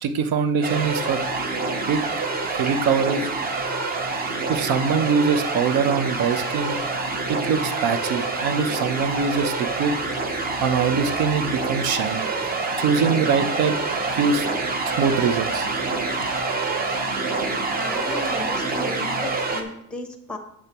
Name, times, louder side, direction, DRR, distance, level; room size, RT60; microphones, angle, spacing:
voice 1, 0.0-1.2 1.9-2.0 2.4-3.3 4.5-6.8 7.3-9.9 10.6-12.3 12.8-13.8 14.1-14.5 15.0-15.7, right 6 dB, 75° right, 9 dB, 0.9 m, -23 dB
sound 1, 0.6-19.6, right 3 dB, 25° right, 0.8 m, -26 dB
Rattle, 13.6-18.5, right 2 dB, 55° right, 3.0 m, -40 dB
voice 2, 17.7-20.4, left 2 dB, 5° left, 6 dB, 0.8 m, -35 dB
10.0 x 7.4 x 3.0 m, 0.77 s
cardioid pair, 175°, 37 cm